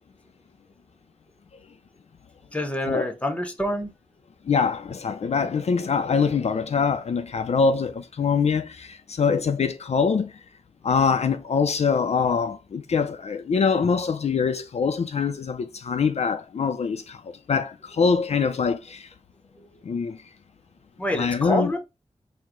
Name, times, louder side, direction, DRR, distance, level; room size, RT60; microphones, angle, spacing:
voice 1, 2.5-3.9 9.3-9.4 19.6-19.7 21.0-21.8, equal, 10° left, 0.9 m, -27 dB
voice 2, 4.5-10.3 10.8-17.2 17.5-19.1 19.8-20.2 21.1-21.7, left 5 dB, 70° left, 0.4 m, -24 dB
4.6 x 2.1 x 3.6 m
wide cardioid pair, 90°, 11 cm